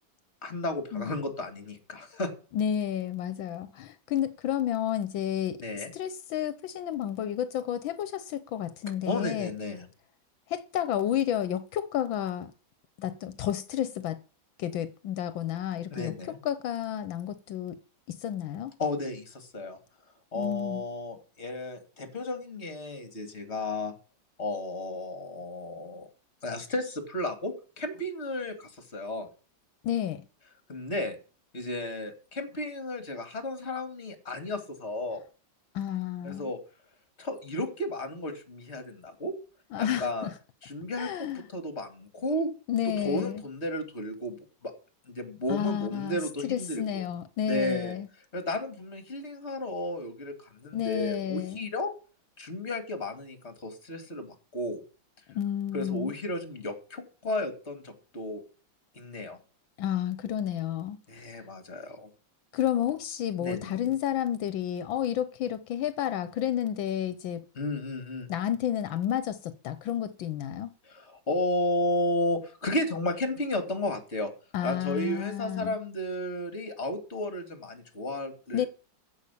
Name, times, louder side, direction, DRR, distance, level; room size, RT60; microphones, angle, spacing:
voice 1, 0.4-2.3 5.6-5.9 9.0-9.9 15.9-16.4 18.8-19.8 20.3-23.9 24.4-26.1 26.4-29.3 30.7-31.2 31.5-35.2 36.2-36.6 37.2-39.3 39.8-40.3 40.6-42.5 42.8-44.7 45.1-47.0 47.5-47.9 48.3-51.9 52.4-54.8 55.7-58.4 58.9-59.4 61.1-62.1 63.4-63.9 67.6-68.3 70.8-74.3 74.6-78.7, left 1 dB, 35° left, 2.6 m, -33 dB
voice 2, 2.5-5.6 5.9-9.5 10.5-12.5 13.0-14.2 14.6-16.1 16.4-17.8 18.1-18.7 20.3-20.8 29.8-30.2 35.7-36.5 39.7-40.3 41.0-41.4 42.7-43.4 45.5-48.1 50.7-51.7 55.3-56.1 59.8-61.3 62.5-67.4 68.3-70.7 74.5-75.8 78.5-78.7, left 10 dB, 80° left, 1.6 m, -31 dB
15.5 x 5.9 x 8.3 m
omnidirectional pair, 2.1 m